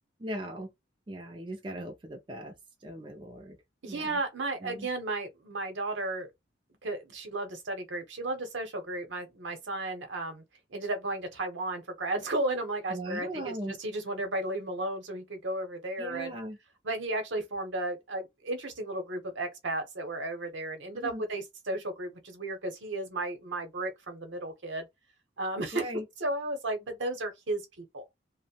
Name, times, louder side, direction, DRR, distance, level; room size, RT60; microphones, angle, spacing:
voice 1, 0.2-0.7 1.1-3.6 3.9-4.2 4.6-4.9 12.9-13.8 16.0-16.6 20.9-21.2 25.7-26.1, right 1 dB, 25° right, 0.4 m, -39 dB
voice 2, 3.8-6.3 6.8-10.4 10.7-16.3 16.8-24.9 25.4-25.8 26.2-28.0, right 2 dB, 70° right, 0.8 m, -34 dB
2.6 x 2.0 x 2.7 m
head